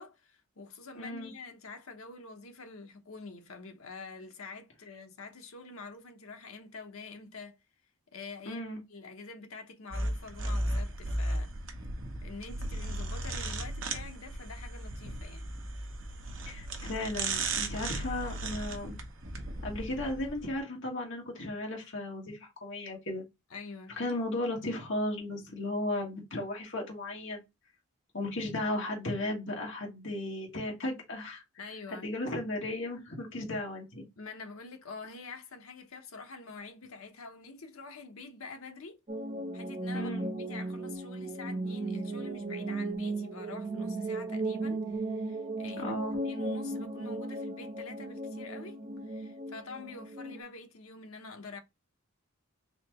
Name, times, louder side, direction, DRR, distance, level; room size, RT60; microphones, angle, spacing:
voice 1, 0.0-7.6 8.1-8.6 8.9-11.6 12.2-15.5 23.5-24.0 31.6-32.1 34.2-39.0 39.5-40.1 40.5-48.8 49.1-51.6, left 4 dB, 75° left, 0.9 m, -46 dB
voice 2, 0.9-1.3 8.4-8.8 16.5-19.0 19.6-23.2 24.0-27.4 28.1-31.4 31.9-34.1 39.9-40.3 45.8-46.2, left 1 dB, 55° left, 1.4 m, -35 dB
sound 1, 9.9-20.6, right 2 dB, 65° right, 0.9 m, -36 dB
sound 2, 39.1-50.4, right 2 dB, 25° right, 0.5 m, -36 dB
4.2 x 2.8 x 2.9 m
head